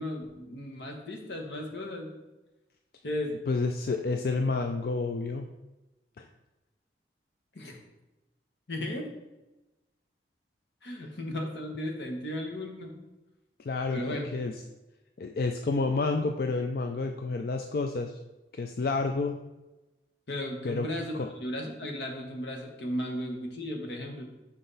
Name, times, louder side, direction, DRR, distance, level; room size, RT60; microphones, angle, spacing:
voice 1, 0.0-2.1 3.0-3.4 7.5-7.8 8.7-9.0 10.8-13.0 13.9-14.3 20.3-24.2, left 1 dB, 80° left, 1 dB, 1.2 m, -35 dB
voice 2, 3.5-5.5 6.2-6.3 13.6-14.5 15.2-18.1 18.5-19.4 20.6-20.9 21.2-21.3, left 3 dB, 55° left, 5 dB, 0.4 m, -29 dB
6.0 x 5.4 x 4.0 m, 1.0 s
head